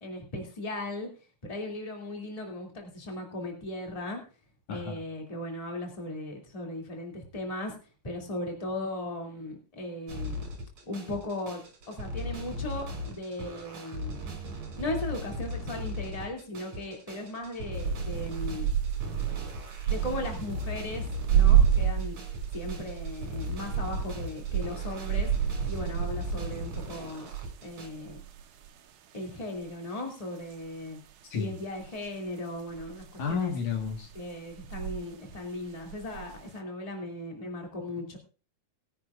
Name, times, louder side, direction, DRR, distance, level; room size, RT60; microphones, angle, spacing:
voice 1, 0.0-1.1 1.4-4.2 4.7-7.7 8.0-10.5 10.9-11.6 11.9-14.2 14.8-18.7 19.9-21.0 21.3-22.2 22.5-25.3 25.7-27.3 27.6-28.2 29.1-31.0 31.3-33.5 34.1-38.2, left 1 dB, 10° left, 1 dB, 2.2 m, -37 dB
voice 2, 4.7-5.0 31.3-31.5 33.2-34.1, left 6 dB, 70° left, 4 dB, 2.9 m, -31 dB
sound 1, 10.1-27.9, left 1 dB, 60° right, 3.8 m, -38 dB
sound 2, 17.8-28.7 29.6-29.7 30.5-30.7 31.8-32.1 32.7-35.1 35.3-36.4, right 9 dB, 80° right, 2.5 m, -29 dB
20.5 x 10.0 x 2.5 m, 0.35 s
omnidirectional pair, 3.6 m